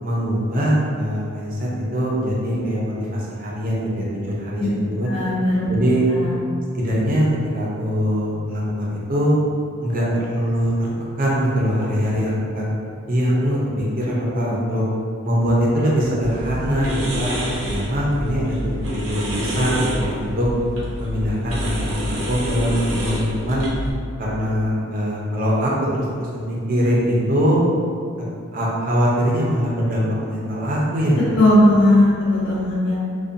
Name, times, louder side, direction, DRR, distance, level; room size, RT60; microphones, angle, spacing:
voice 1, 0.0-5.1 5.7-6.1 6.7-7.3 7.5-9.4 9.8-10.9 11.2-12.7 13.1-14.8 15.2-17.3 17.7-20.5 21.0-23.7 24.2-27.6 28.5-31.4, equal, 40° right, -5 dB, 0.5 m, -22 dB
voice 2, 5.0-5.7 6.1-6.3 31.1-33.0, left 1 dB, 60° left, -11 dB, 0.5 m, -17 dB
sound 1, 16.2-23.9, equal, 85° right, 0.6 m, -28 dB
2.4 x 2.2 x 2.6 m, 2.4 s
head